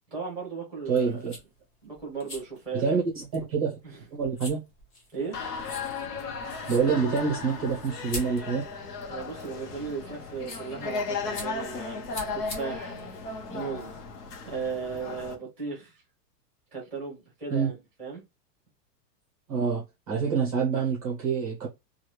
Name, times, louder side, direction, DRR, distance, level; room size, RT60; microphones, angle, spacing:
voice 1, 0.1-1.2 1.8-3.0 3.8-4.0 5.1-5.4 9.1-12.0 12.3-13.0 13.5-13.9 14.4-16.0 16.7-18.2, right 5 dB, 5° left, 0.9 m, -36 dB
sound 1, 0.8-14.0, left 1 dB, 30° left, 1.0 m, -45 dB
voice 2, 0.9-1.3 2.7-3.7 4.1-4.6 6.7-8.7 17.5-17.7 19.5-21.7, right 5 dB, 25° right, 0.6 m, -26 dB
sound 2, 5.3-15.4, left 4 dB, 70° left, 1.0 m, -36 dB
3.0 x 2.4 x 3.1 m
supercardioid pair, 180°, 48 cm